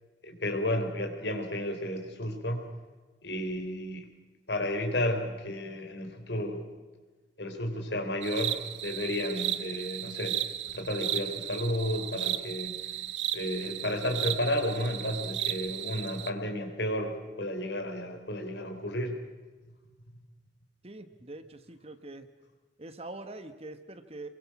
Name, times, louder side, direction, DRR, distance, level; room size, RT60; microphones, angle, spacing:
voice 1, 0.2-2.7 3.2-4.1 4.5-6.6 7.4-10.4 10.7-12.9 13.3-19.1, left 1 dB, 70° left, 5 dB, 4.0 m, -32 dB
sound 1, 8.2-16.3, right 12 dB, 85° right, 1.0 m, -35 dB
voice 2, 20.8-22.3 22.8-24.3, right 2 dB, 35° right, 10 dB, 1.4 m, -44 dB
28.0 x 23.0 x 6.1 m, 1.3 s
head